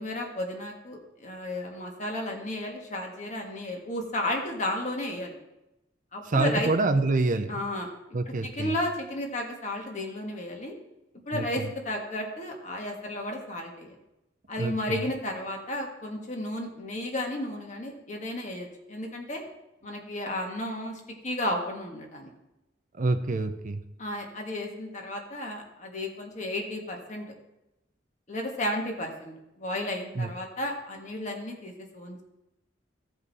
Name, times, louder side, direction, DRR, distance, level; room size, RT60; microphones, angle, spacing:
voice 1, 0.0-5.3 6.1-6.7 7.5-7.9 8.3-10.8 11.3-14.0 14.5-19.4 19.8-22.3 24.0-27.3 28.3-32.2, left 1 dB, 40° left, 1 dB, 1.6 m, -33 dB
voice 2, 6.3-7.5 8.1-8.7 11.3-11.7 14.6-15.0 23.0-23.8 30.2-30.3, right 3 dB, 45° right, 9 dB, 0.6 m, -26 dB
15.5 x 5.3 x 4.2 m, 0.93 s
head